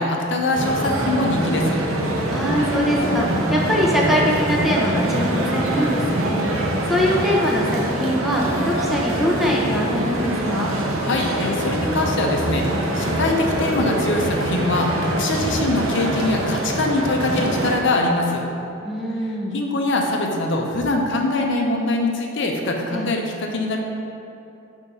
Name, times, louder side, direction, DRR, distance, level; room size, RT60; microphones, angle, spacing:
voice 1, 0.0-1.8 11.0-12.6 12.9-18.4 19.5-23.8, left 2 dB, 60° left, 1 dB, 0.7 m, -23 dB
sound 1, 0.5-17.8, right 1 dB, 85° right, 0.7 m, -24 dB
voice 2, 2.3-10.7 18.8-19.6 22.9-23.1, equal, ahead, -4 dB, 0.7 m, -23 dB
5.5 x 3.5 x 5.4 m, 2.8 s
head